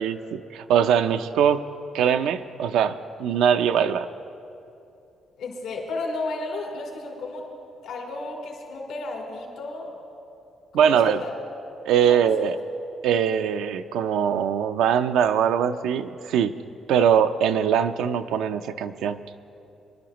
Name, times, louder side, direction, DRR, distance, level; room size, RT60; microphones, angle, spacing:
voice 1, 0.0-1.7 1.9-4.1 10.7-11.2 11.9-12.6 13.0-16.5 16.9-19.2, right 8 dB, 85° right, 9 dB, 0.5 m, -22 dB
voice 2, 5.4-7.5 7.8-10.0 10.7-11.3 12.0-12.5, left 2 dB, 85° left, -1 dB, 3.4 m, -33 dB
24.0 x 11.5 x 3.0 m, 2.7 s
cardioid pair, 90°, 0 cm